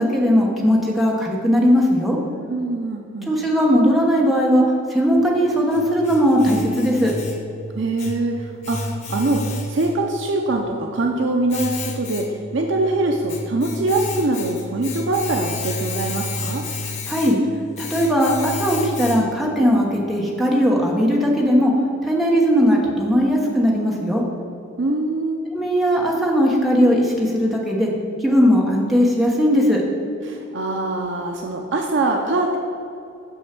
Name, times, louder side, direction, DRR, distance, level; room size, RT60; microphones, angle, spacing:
voice 1, 0.0-2.2 3.3-4.6 4.9-7.1 17.1-17.4 17.8-21.7 22.0-24.2 25.5-27.9 28.2-29.8, equal, ahead, -3 dB, 1.1 m, -18 dB
voice 2, 2.5-3.3 7.7-16.6 24.8-25.4 30.2-32.6, right 2 dB, 60° right, 2 dB, 0.6 m, -23 dB
Domestic sounds home sounds, 5.2-19.6, left 2 dB, 35° left, 0.6 m, -32 dB
6.4 x 6.3 x 5.9 m, 2.7 s
head